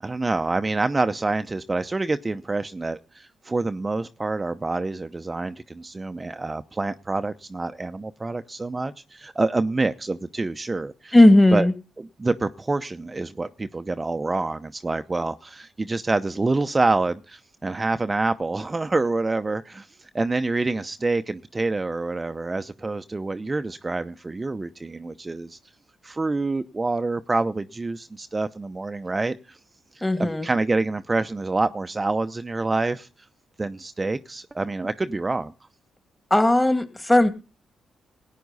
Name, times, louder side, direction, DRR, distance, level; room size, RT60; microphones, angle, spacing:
voice 1, 0.0-11.1 11.5-11.7 12.2-19.9 20.1-25.6 26.0-29.6 29.9-33.1 33.6-35.5, right 3 dB, 30° right, 0.7 m, -27 dB
voice 2, 11.1-11.7 30.0-30.5 36.3-37.3, left 1 dB, 15° left, 2.4 m, -16 dB
17.5 x 9.3 x 4.1 m
hypercardioid pair, 45°, 0 cm